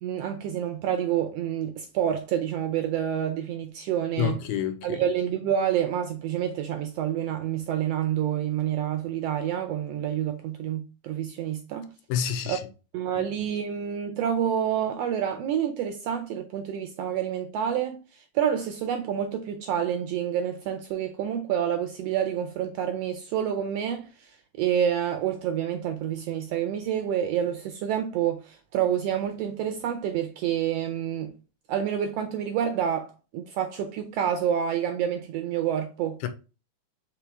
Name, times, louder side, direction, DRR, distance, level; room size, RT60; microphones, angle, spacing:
voice 1, 0.0-4.4 4.8-11.9 12.5-12.6 12.9-24.3 24.6-31.3 31.7-36.2, right 9 dB, 80° right, 1.5 m, -28 dB
voice 2, 4.2-5.0 12.1-12.6 13.2-13.3 36.2-36.3, left 9 dB, 85° left, 2.0 m, -28 dB
5.0 x 3.0 x 3.3 m
omnidirectional pair, 3.3 m